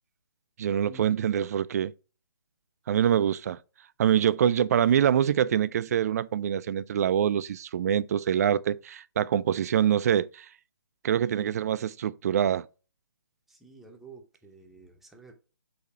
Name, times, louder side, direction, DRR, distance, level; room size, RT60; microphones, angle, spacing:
voice 1, 0.6-1.9 2.9-3.6 4.0-10.5 11.0-12.7, right 9 dB, 40° right, 0.4 m, -25 dB
voice 2, 13.5-15.3, right 3 dB, ahead, 0.9 m, -50 dB
8.2 x 2.8 x 4.3 m
figure-of-eight pair, 145°, 12 cm